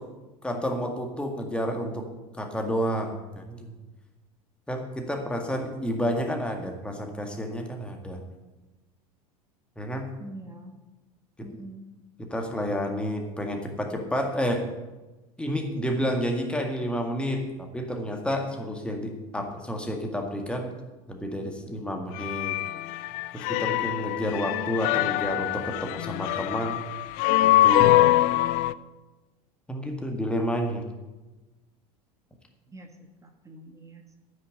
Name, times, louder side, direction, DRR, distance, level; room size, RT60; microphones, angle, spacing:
voice 1, 0.4-2.1 2.4-3.7 4.7-8.2 9.8-10.1 12.3-14.6 15.4-20.7 21.1-22.6 23.3-26.8 27.4-28.1 29.7-30.8, equal, 5° left, 3 dB, 1.9 m, -30 dB
voice 2, 10.2-10.7 11.4-11.9 32.7-34.2, right 1 dB, 15° right, 5 dB, 1.4 m, -45 dB
sound 1, 22.2-28.7, left 15 dB, 45° left, 0.4 m, -23 dB
9.6 x 6.4 x 8.8 m, 1.1 s
figure-of-eight pair, 80°, 19 cm